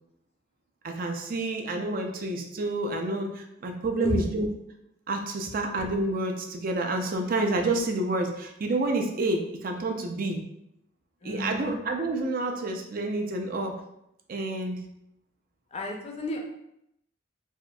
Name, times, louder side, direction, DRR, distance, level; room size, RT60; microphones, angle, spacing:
voice 1, 0.8-4.5 5.1-10.4 11.2-13.8 14.3-14.8, right 2 dB, 45° right, 3 dB, 0.4 m, -29 dB
voice 2, 11.2-11.8 15.7-16.4, left 2 dB, 35° left, 1 dB, 0.5 m, -32 dB
4.3 x 2.4 x 2.2 m, 0.79 s
head